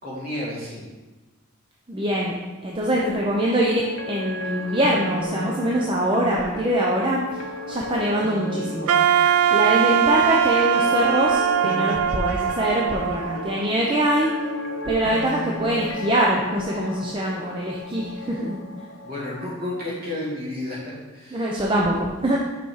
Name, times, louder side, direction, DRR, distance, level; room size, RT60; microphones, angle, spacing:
voice 1, 0.0-0.8 19.0-21.5, left 1 dB, 45° right, -6 dB, 2.3 m, -31 dB
voice 2, 1.9-2.4 2.6-7.4 7.7-8.9 9.5-14.3 14.9-18.6 21.3-22.4, right 1 dB, 25° right, -3 dB, 0.6 m, -23 dB
sound 1, 3.0-19.4, left 2 dB, 65° left, 0.6 m, -34 dB
Wind instrument woodwind instrument, 8.9-13.9, right 9 dB, 90° right, 0.4 m, -21 dB
5.9 x 5.6 x 4.7 m, 1.2 s
head